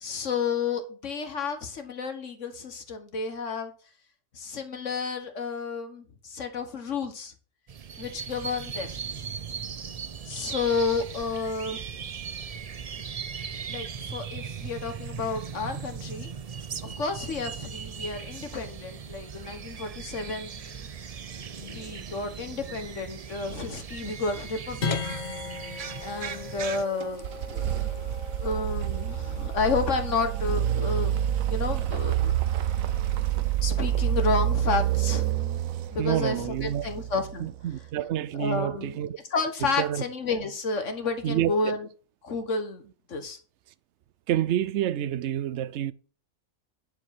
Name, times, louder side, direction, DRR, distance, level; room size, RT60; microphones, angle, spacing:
voice 1, 0.0-3.7 4.3-7.3 8.0-8.9 10.2-11.8 13.7-16.3 16.8-20.9 21.5-25.2 26.0-31.2 31.5-32.3 33.6-35.4 35.9-37.5 38.4-39.0 39.3-41.9 42.2-42.8 43.1-43.4, left 4 dB, 65° left, 1.7 m, -31 dB
sound 1, 7.7-26.8, right 6 dB, 50° right, 0.4 m, -38 dB
sound 2, 24.8-35.3, left 4 dB, 40° left, 0.8 m, -40 dB
sound 3, 27.0-37.8, right 11 dB, 85° right, 1.1 m, -28 dB
voice 2, 36.0-36.9 37.4-39.2 39.6-40.0 41.2-41.6 44.3-45.9, right 11 dB, 65° right, 0.8 m, -28 dB
10.5 x 4.9 x 5.8 m
omnidirectional pair, 1.4 m